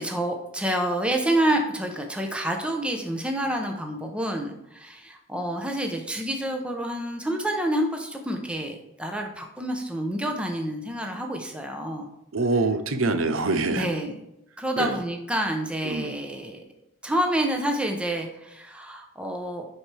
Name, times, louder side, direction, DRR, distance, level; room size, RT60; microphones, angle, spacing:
voice 1, 0.0-12.1 13.7-14.2 14.6-16.6 17.0-19.7, right 1 dB, 5° right, 2 dB, 0.8 m, -28 dB
voice 2, 12.3-13.9 14.8-15.0 15.8-16.1, right 3 dB, 90° right, 10 dB, 0.8 m, -25 dB
10.5 x 4.4 x 3.4 m, 0.87 s
head